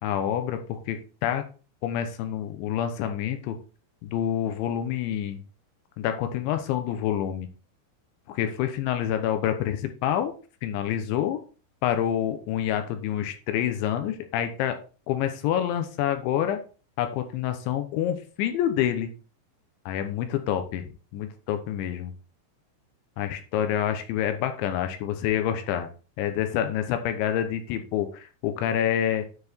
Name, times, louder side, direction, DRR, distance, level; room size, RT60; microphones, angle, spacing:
voice 1, 0.0-1.4 1.8-3.6 4.0-5.4 6.0-7.5 8.3-10.3 10.6-11.4 11.8-14.8 15.1-16.6 17.0-19.1 19.9-22.1 23.2-25.9 26.2-29.3, left 10 dB, 75° left, 7 dB, 3.0 m, -27 dB
9.7 x 4.6 x 4.4 m, 0.36 s
omnidirectional pair, 6.0 m